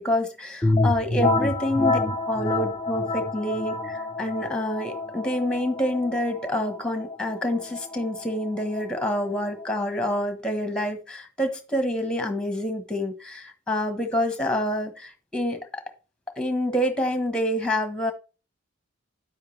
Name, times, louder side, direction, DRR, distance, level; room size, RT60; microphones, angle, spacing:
voice 1, 0.0-2.0 2.3-15.8 16.4-18.1, left 1 dB, 5° left, 6 dB, 1.3 m, -27 dB
sound 1, 0.6-10.2, left 2 dB, 20° left, 0.7 m, -28 dB
9.4 x 7.7 x 3.4 m, 0.34 s
head